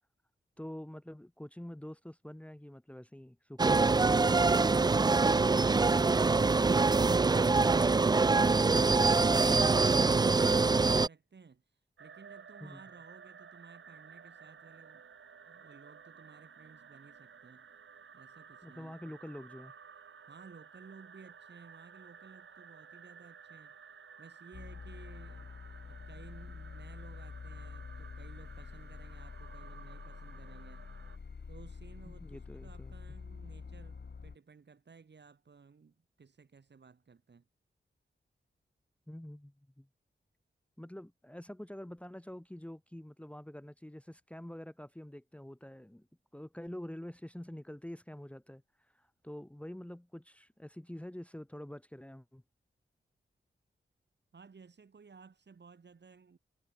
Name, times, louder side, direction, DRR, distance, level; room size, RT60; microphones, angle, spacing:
voice 1, 0.6-4.3 12.6-12.8 18.6-19.7 32.0-32.9 39.1-39.9 40.8-46.1 46.3-52.4, left 1 dB, 5° left, 1.3 m, -46 dB
sound 1, 3.6-11.1, right 3 dB, 20° right, 0.4 m, -24 dB
voice 2, 12.0-15.1 15.5-17.7 18.1-19.2 20.2-23.8 24.2-25.5 25.9-30.9 31.5-37.5 54.3-56.4, right 5 dB, 60° right, 5.5 m, -57 dB
sound 2, 12.0-31.2, right 6 dB, 90° right, 6.4 m, -55 dB
sound 3, 24.5-34.4, left 5 dB, 60° left, 4.0 m, -47 dB
wide cardioid pair, 85°, 20 cm